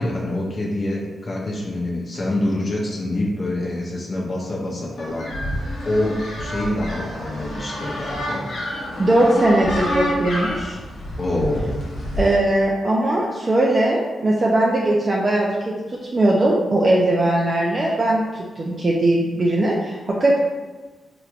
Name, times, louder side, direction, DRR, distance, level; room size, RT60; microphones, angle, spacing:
voice 1, 0.0-5.2 5.6-8.4 11.2-11.9, left 1 dB, 45° left, -3 dB, 0.6 m, -26 dB
sound 1, 5.0-12.4, equal, 80° left, 1.0 m, -28 dB
voice 2, 9.0-10.8 12.2-20.4, right 1 dB, 40° right, -3 dB, 0.4 m, -19 dB
3.3 x 3.0 x 2.4 m, 1.3 s
cardioid pair, 55°, 0 cm